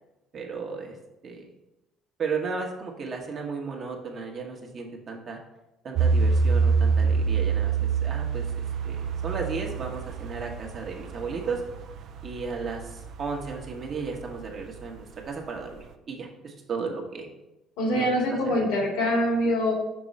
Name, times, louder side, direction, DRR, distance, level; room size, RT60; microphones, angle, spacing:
voice 1, 0.3-1.0 1.2-1.5 2.2-5.4 5.8-11.6 12.2-17.3 17.9-18.8, right 4 dB, 45° right, 1 dB, 1.2 m, -34 dB
sound 1, 5.9-15.3 15.7-15.8, right 5 dB, 60° right, 0.5 m, -27 dB
voice 2, 17.8-19.7, left 1 dB, 85° left, -1 dB, 2.0 m, -24 dB
6.0 x 3.1 x 5.2 m, 0.95 s
cardioid pair, 100°, 0 cm